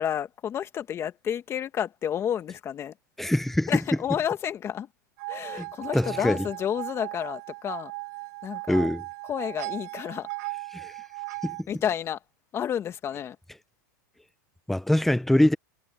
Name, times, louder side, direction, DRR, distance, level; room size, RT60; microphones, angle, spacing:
voice 1, 0.0-2.9 3.7-4.9 5.3-7.9 8.4-8.9 9.3-10.3 11.7-12.2 12.5-13.4, left 9 dB, 25° left, 2.1 m, -30 dB
voice 2, 3.2-3.7 5.6-5.7 5.9-6.4 8.7-9.0 10.7-10.9 11.4-11.7 14.7-15.5, left 1 dB, ahead, 0.8 m, -23 dB
sound 1, 5.2-11.6, right 26 dB, 60° right, 2.1 m, -37 dB
supercardioid pair, 130°, 10 cm